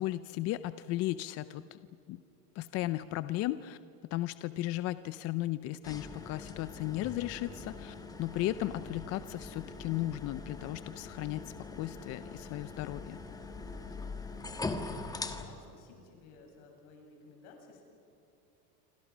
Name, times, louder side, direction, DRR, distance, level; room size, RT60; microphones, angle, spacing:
voice 1, 0.0-1.8 2.1-2.2 2.6-3.8 4.1-13.2, left 15 dB, 35° left, 14 dB, 0.5 m, -35 dB
sound 1, 5.8-15.4, left 3 dB, 10° left, 1.4 m, -42 dB
voice 2, 14.4-17.8, left 4 dB, 65° left, 2 dB, 7.8 m, -56 dB
28.0 x 25.5 x 6.2 m, 2.8 s
supercardioid pair, 150°, 46 cm